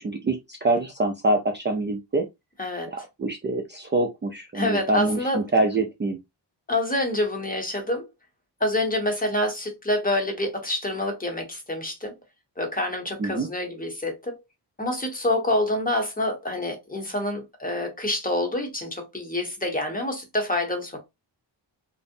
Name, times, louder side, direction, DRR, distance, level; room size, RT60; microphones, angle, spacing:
voice 1, 0.0-2.3 2.9-6.2 13.2-13.5, right 2 dB, 25° right, 0.4 m, -25 dB
voice 2, 2.6-2.9 4.5-5.4 6.7-8.0 8.6-12.1 12.6-14.4 14.8-21.0, left 1 dB, 20° left, 0.9 m, -27 dB
2.6 x 2.1 x 2.5 m
wide cardioid pair, 90°, 43 cm